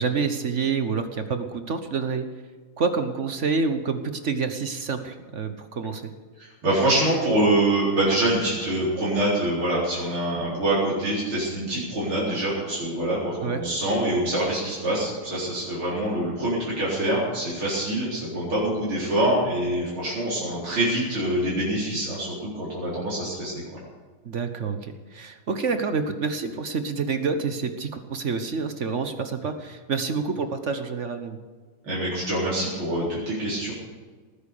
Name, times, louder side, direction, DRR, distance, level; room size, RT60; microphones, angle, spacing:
voice 1, 0.0-2.3 2.8-6.1 13.4-13.6 24.2-31.4, right 5 dB, 45° right, 8 dB, 1.0 m, -28 dB
voice 2, 6.4-23.6 31.8-33.7, right 1 dB, 75° right, -8 dB, 5.0 m, -25 dB
18.5 x 10.5 x 6.7 m, 1.4 s
omnidirectional pair, 2.3 m